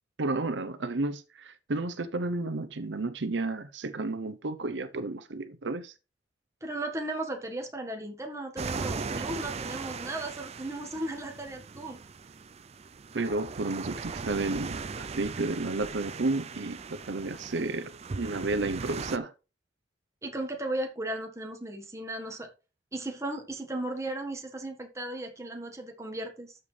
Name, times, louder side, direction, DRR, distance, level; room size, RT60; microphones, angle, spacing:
voice 1, 0.2-5.9 9.2-9.3 13.1-19.3, right 2 dB, 85° right, 0.8 m, -32 dB
voice 2, 6.6-12.0 20.2-22.5 22.9-26.6, right 1 dB, 15° right, 1.5 m, -36 dB
sound 1, 8.6-19.2, right 4 dB, 35° right, 0.4 m, -38 dB
12.5 x 6.8 x 3.3 m
head